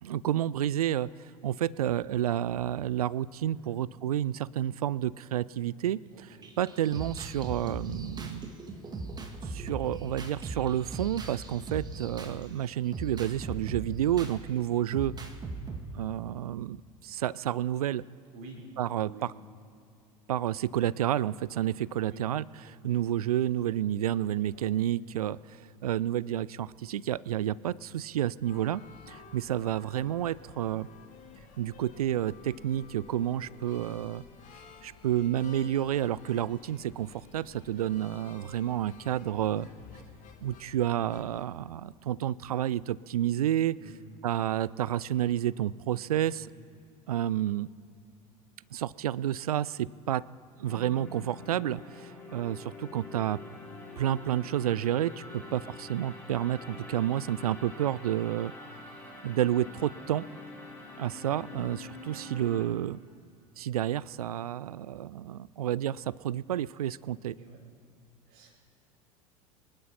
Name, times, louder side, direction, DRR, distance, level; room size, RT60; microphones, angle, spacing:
voice 1, 0.0-1.1 1.4-8.5 9.5-15.1 15.9-18.0 18.8-19.3 20.3-30.9 31.6-34.2 34.8-39.7 40.4-43.8 44.2-46.5 47.1-47.7 48.7-50.2 50.6-53.4 54.0-58.5 59.2-60.2 61.0-63.0 63.6-67.4, right 11 dB, 70° right, 22 dB, 0.4 m, -30 dB
voice 2, 6.1-6.5 11.6-11.9 14.3-14.6 18.3-18.6 18.9-19.3 22.0-22.2 24.7-24.8 33.4-33.8 37.9-38.0 39.6-39.9 43.8-44.0 46.4-46.5 53.5-53.6 55.2-55.4 61.5-61.6 67.4-67.6 68.3-68.6, right 4 dB, 50° right, -1 dB, 4.7 m, -50 dB
sound 1, 6.4-12.4 12.9-14.4 14.9-15.8, right 3 dB, 20° right, 1.8 m, -39 dB
sound 2, 28.4-41.5, left 5 dB, 40° left, 2.3 m, -52 dB
sound 3, 50.6-62.7, left 2 dB, 10° left, 3.5 m, -46 dB
26.0 x 11.5 x 4.2 m, 2.6 s
figure-of-eight pair, 75°, 19 cm